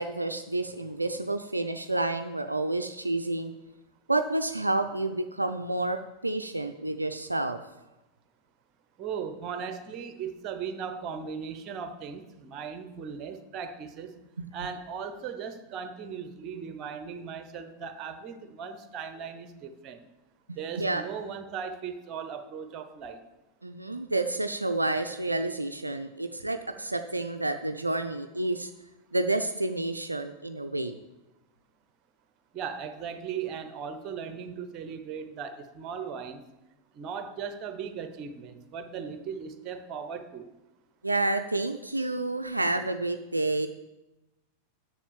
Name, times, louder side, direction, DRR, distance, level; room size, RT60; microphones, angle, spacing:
voice 1, 0.0-3.5 4.1-7.6 14.4-14.5 20.5-21.0 23.6-28.7 29.1-31.0 41.0-43.7, right 2 dB, 85° right, 7 dB, 0.4 m, -29 dB
voice 2, 9.0-14.2 14.5-20.0 20.6-23.2 32.5-36.4 36.9-40.5, right 6 dB, 35° right, 9 dB, 1.0 m, -38 dB
7.2 x 7.1 x 7.2 m, 1.0 s
figure-of-eight pair, 90°, 0 cm